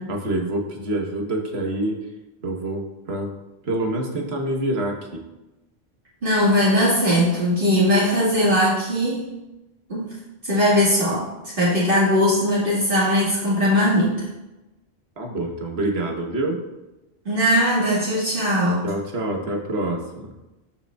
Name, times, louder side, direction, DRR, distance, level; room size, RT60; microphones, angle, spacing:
voice 1, 0.1-2.0 2.4-2.8 3.1-3.3 3.6-5.2 15.2-16.6 18.8-20.3, right 1 dB, 75° right, 1 dB, 1.4 m, -26 dB
voice 2, 6.2-9.3 9.9-10.1 10.4-11.3 11.6-14.1 17.3-18.8, equal, 60° right, -8 dB, 1.9 m, -19 dB
12.5 x 5.0 x 2.3 m, 0.99 s
omnidirectional pair, 1.1 m